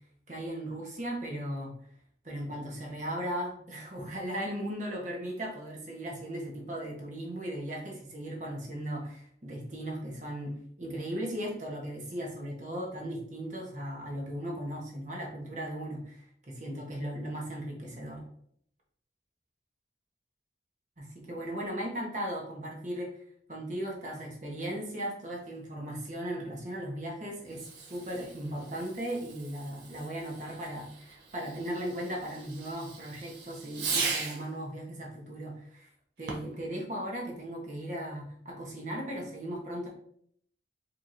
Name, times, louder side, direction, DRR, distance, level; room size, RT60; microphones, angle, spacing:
voice 1, 0.3-1.7 2.2-18.3 21.0-23.2 23.5-35.9 36.2-39.9, right 1 dB, 40° right, -1 dB, 1.0 m, -37 dB
Fireworks, 27.4-34.5 36.2-36.7, right 5 dB, 65° right, 0.7 m, -39 dB
4.5 x 3.0 x 2.5 m, 0.66 s
head